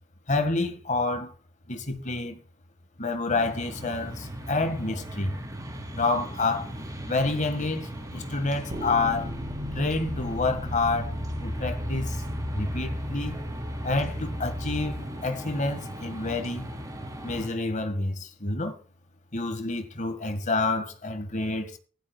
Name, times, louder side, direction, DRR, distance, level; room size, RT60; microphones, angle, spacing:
voice 1, 0.3-1.3 1.7-2.4 3.0-5.3 5.9-6.7 7.1-9.3 9.7-11.1 11.4-12.2 12.5-13.4 13.8-16.7 17.2-18.7 19.3-21.7, left 3 dB, 40° left, 1.9 m, -28 dB
sound 1, 3.3-17.5, equal, 20° right, 3.1 m, -38 dB
sound 2, 8.7-15.0, equal, 40° right, 4.4 m, -35 dB
15.5 x 12.0 x 2.4 m
head